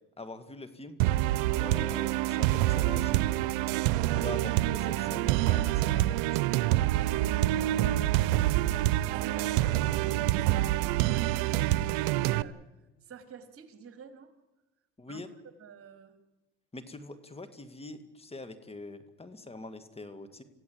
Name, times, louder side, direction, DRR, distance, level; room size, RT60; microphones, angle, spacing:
voice 1, 0.2-1.0 1.6-3.6 4.0-6.4 15.0-15.3 16.7-20.4, left 2 dB, 20° left, 11 dB, 2.3 m, -44 dB
sound 1, 1.0-12.4, right 15 dB, 85° right, 0.7 m, -26 dB
voice 2, 7.1-12.6 13.0-14.3 15.1-15.3 15.6-16.2, right 6 dB, 50° right, 7 dB, 3.5 m, -49 dB
27.0 x 16.0 x 8.8 m, 1.1 s
supercardioid pair, 85°, 29 cm